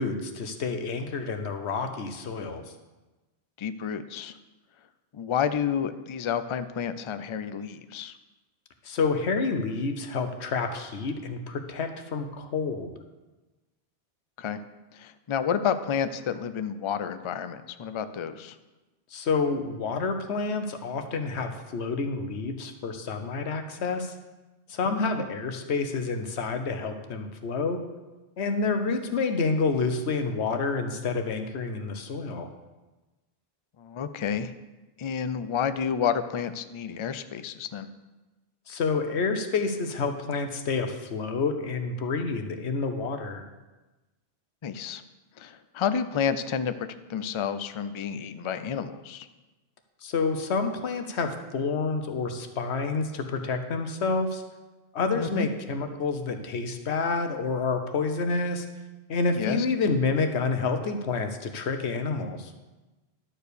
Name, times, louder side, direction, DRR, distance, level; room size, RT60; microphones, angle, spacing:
voice 1, 0.0-2.6 8.8-12.9 19.1-24.1 24.7-27.8 28.4-32.5 38.7-43.4 50.0-54.4 54.9-58.7 59.1-62.5, left 4 dB, 80° left, 7 dB, 1.2 m, -28 dB
voice 2, 3.6-4.4 5.1-8.1 14.4-14.6 14.9-18.5 24.8-25.0 33.8-34.5 35.0-37.9 44.6-45.0 45.4-49.3 55.1-55.5 59.4-59.7, left 7 dB, 50° left, 11 dB, 0.3 m, -30 dB
11.5 x 4.6 x 6.8 m, 1.1 s
omnidirectional pair, 1.1 m